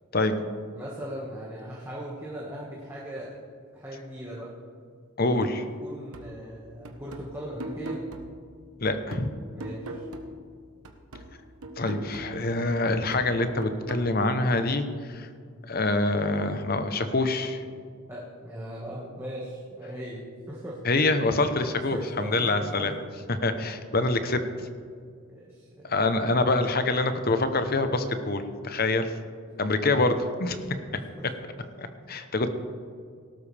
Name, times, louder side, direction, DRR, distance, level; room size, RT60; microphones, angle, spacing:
voice 1, 0.7-3.3 3.7-4.5 5.2-5.3 5.8-8.0 9.5-10.1 18.1-20.8 21.6-22.7 25.3-26.2 30.7-31.3 32.2-32.3, right 1 dB, 10° right, -6 dB, 1.7 m, -39 dB
voice 2, 5.2-5.6 8.8-9.3 11.8-15.3 15.7-17.6 20.8-22.9 23.3-24.4 25.9-29.1 29.6-30.6 31.8-32.5, left 2 dB, 45° left, 9 dB, 0.9 m, -25 dB
sound 1, 6.1-10.6 10.8-14.1, right 2 dB, 80° right, 1.2 m, -41 dB
18.5 x 12.5 x 3.4 m, 2.1 s
head